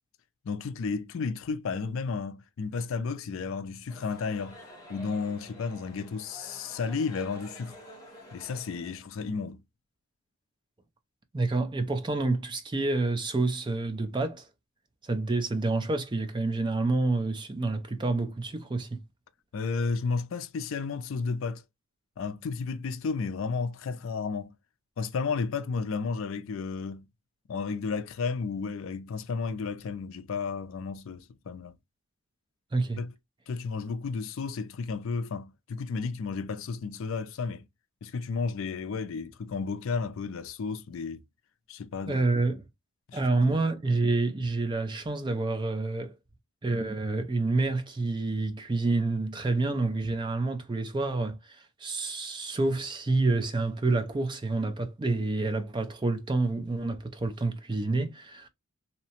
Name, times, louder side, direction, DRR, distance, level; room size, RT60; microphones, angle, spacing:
voice 1, 0.4-4.6 4.9-7.8 8.3-9.6 19.5-21.6 22.2-24.5 25.0-27.1 27.5-31.8 33.0-33.1 33.5-37.6 38.0-41.2 41.7-42.3 43.1-43.2, left 4 dB, 65° left, 0.4 m, -32 dB
sound 1, 3.9-9.0, right 1 dB, 15° left, 0.9 m, -49 dB
voice 2, 11.3-14.5 15.0-19.0 32.7-33.0 42.0-42.6 43.1-46.1 46.6-58.5, right 3 dB, 20° right, 0.4 m, -28 dB
2.8 x 2.1 x 2.8 m
head